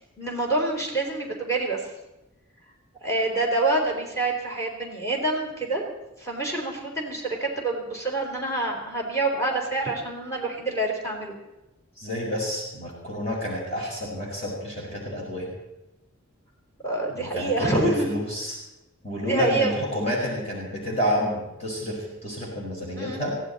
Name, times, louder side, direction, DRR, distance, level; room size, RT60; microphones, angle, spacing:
voice 1, 0.2-1.8 3.0-5.8 6.2-11.3 16.8-18.1 19.2-19.8 22.9-23.2, right 2 dB, 15° left, -1 dB, 4.0 m, -27 dB
voice 2, 12.0-15.5 17.2-18.6 19.0-23.3, equal, 30° left, -3 dB, 5.4 m, -29 dB
22.5 x 15.5 x 4.2 m, 0.97 s
head